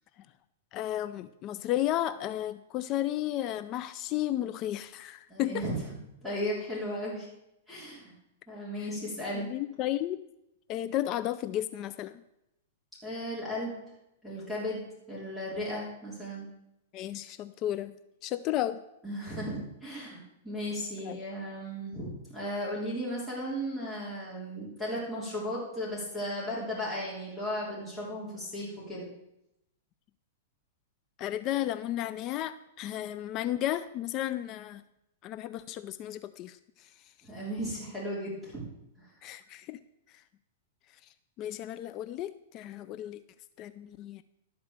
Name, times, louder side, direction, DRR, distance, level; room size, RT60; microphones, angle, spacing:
voice 1, 0.7-5.6 8.8-8.9 9.3-10.2 10.7-12.2 16.9-18.0 18.2-18.8 21.0-21.2 31.2-34.8 35.2-36.9 39.2-39.8 41.4-43.2 43.6-44.2, left 13 dB, 35° left, 13 dB, 0.4 m, -33 dB
voice 2, 5.3-5.7 6.2-7.3 7.7-8.1 8.5-9.5 13.0-13.8 14.2-14.8 15.1-16.5 19.0-29.1 37.2-38.7 39.0-39.1, equal, 5° left, -9 dB, 3.6 m, -35 dB
12.5 x 4.4 x 6.6 m, 0.84 s
hypercardioid pair, 135°, 0 cm